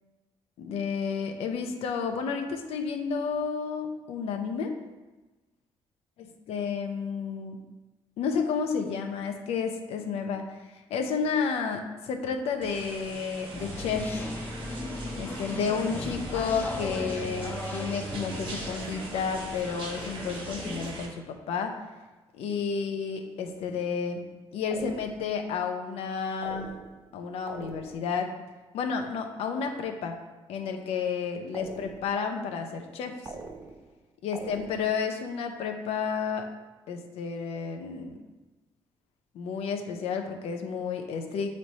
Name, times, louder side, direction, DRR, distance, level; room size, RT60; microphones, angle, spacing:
voice 1, 0.6-4.8 6.5-7.6 8.2-14.2 15.2-21.8 22.3-24.2 24.5-26.7 27.1-28.3 28.7-30.2 30.5-33.2 34.2-36.5 36.9-38.2 39.3-41.6, left 6 dB, 80° left, 4 dB, 0.6 m, -31 dB
sound 1, 12.6-21.1, right 2 dB, 55° right, 0.9 m, -42 dB
sound 2, 13.5-20.9, left 1 dB, 15° left, 0.6 m, -37 dB
sound 3, 24.7-25.4 26.4-27.1 27.5-28.2 31.5-32.3 33.2-34.0 34.3-35.1, right 4 dB, 25° right, 0.3 m, -43 dB
7.4 x 3.2 x 4.1 m, 1.2 s
cardioid pair, 180°, 10 cm